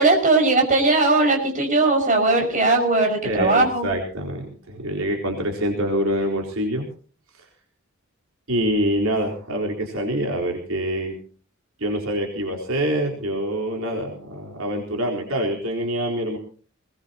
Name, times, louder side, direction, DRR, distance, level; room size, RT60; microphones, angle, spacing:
voice 1, 0.0-3.9, right 2 dB, 35° right, 2 dB, 5.8 m, -19 dB
voice 2, 3.2-6.9 8.5-11.2 11.8-16.4, equal, 70° right, 1 dB, 4.3 m, -25 dB
21.5 x 20.5 x 2.9 m, 0.41 s
head